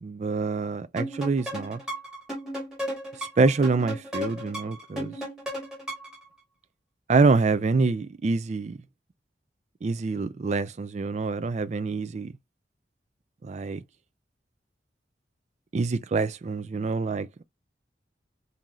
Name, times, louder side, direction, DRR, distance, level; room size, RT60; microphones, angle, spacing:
voice 1, 0.0-1.8 3.4-5.1 7.1-8.8 9.8-12.3 13.4-13.8 15.7-17.4, right 4 dB, 40° right, 0.4 m, -26 dB
sound 1, 1.0-6.2, equal, 5° right, 1.9 m, -35 dB
3.7 x 2.7 x 3.0 m
head